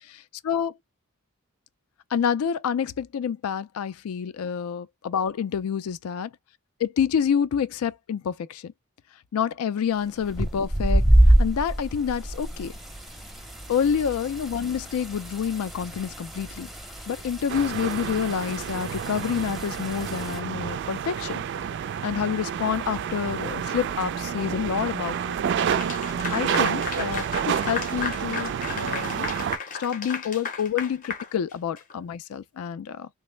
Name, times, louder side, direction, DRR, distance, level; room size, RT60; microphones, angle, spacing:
voice 1, 2.1-6.3 6.8-8.7 9.3-11.0 11.4-12.7 13.7-16.7 17.1-21.4 22.0-25.3 26.3-29.3 29.8-33.1, left 7 dB, 85° left, 0.4 m, -28 dB
sound 1, 10.2-20.4, right 1 dB, ahead, 0.5 m, -26 dB
sound 2, 17.5-29.6, right 8 dB, 55° right, 0.3 m, -29 dB
Clapping / Applause, 25.6-31.9, left 5 dB, 40° left, 0.6 m, -34 dB
3.2 x 2.0 x 3.1 m
head